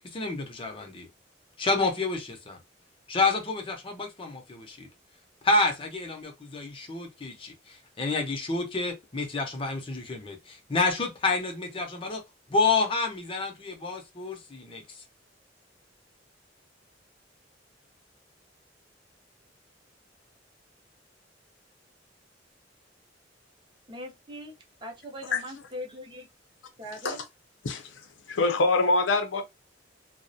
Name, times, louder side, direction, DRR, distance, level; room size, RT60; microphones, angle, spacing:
voice 1, 0.1-1.1 1.6-2.6 3.1-4.9 5.4-12.2 12.5-14.8, left 3 dB, 30° left, 0.6 m, -29 dB
voice 2, 23.9-24.5 24.8-26.3 26.8-27.2, equal, 25° right, 0.6 m, -40 dB
voice 3, 27.6-28.0 28.3-29.4, left 3 dB, 85° left, 0.5 m, -24 dB
2.3 x 2.0 x 2.6 m
head